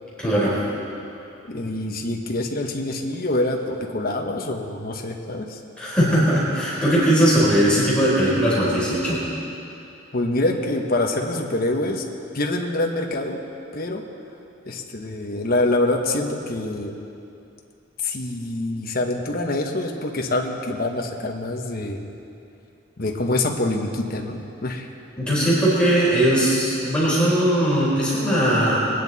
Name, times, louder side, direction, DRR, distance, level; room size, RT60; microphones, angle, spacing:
voice 1, 0.2-0.6 5.8-9.2 25.2-28.8, equal, 5° left, -9 dB, 3.8 m, -19 dB
voice 2, 1.5-5.6 10.1-12.1 12.3-13.4 13.7-14.0 14.6-16.9 18.0-22.0 23.0-24.9, left 2 dB, 50° left, 2 dB, 1.1 m, -25 dB
21.5 x 10.0 x 4.1 m, 2.7 s
head